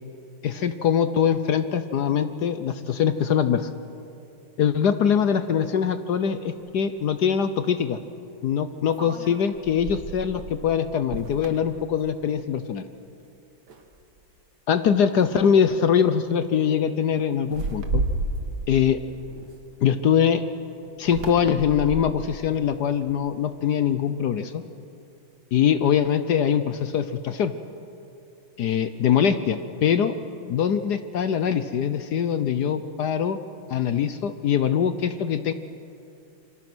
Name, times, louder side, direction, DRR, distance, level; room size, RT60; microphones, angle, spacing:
voice 1, 0.4-3.7 4.6-8.0 8.4-12.8 14.7-18.0 18.7-19.0 19.8-20.4 21.0-24.6 25.5-27.5 28.6-30.1 30.5-33.4 33.7-35.5, left 8 dB, 65° left, 11 dB, 1.1 m, -23 dB
sound 1, 6.7-6.8 8.9-12.6 12.9-13.2 13.7-14.3 15.2-15.4 15.7-16.0 17.4-20.0 21.0-23.4, right 2 dB, 50° right, 2.1 m, -33 dB
27.0 x 24.0 x 6.2 m, 2.7 s
omnidirectional pair, 2.4 m